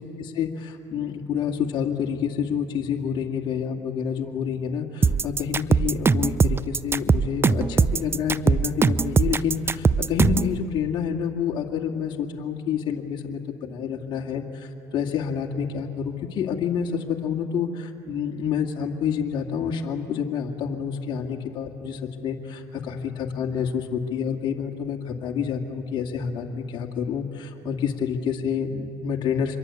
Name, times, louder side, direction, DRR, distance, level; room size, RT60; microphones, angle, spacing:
voice 1, 0.0-29.6, left 7 dB, 50° left, 0 dB, 2.2 m, -28 dB
sound 1, 5.0-10.5, right 5 dB, 25° right, 0.6 m, -20 dB
26.0 x 22.0 x 8.3 m, 2.9 s
supercardioid pair, 80°, 10 cm